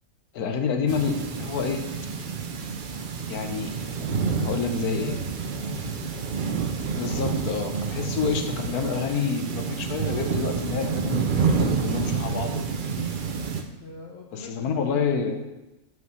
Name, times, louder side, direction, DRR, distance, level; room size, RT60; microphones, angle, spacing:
voice 1, 0.3-1.8 3.3-3.8 4.5-5.2 7.0-12.7 13.0-13.1 14.3-15.4, left 5 dB, 80° left, 6 dB, 1.3 m, -28 dB
sound 1, 0.9-13.6, right 5 dB, 55° right, 0.5 m, -28 dB
voice 2, 4.0-6.2 13.8-15.4, left 4 dB, 55° left, 0 dB, 0.8 m, -39 dB
6.4 x 4.7 x 5.5 m, 0.99 s
omnidirectional pair, 1.6 m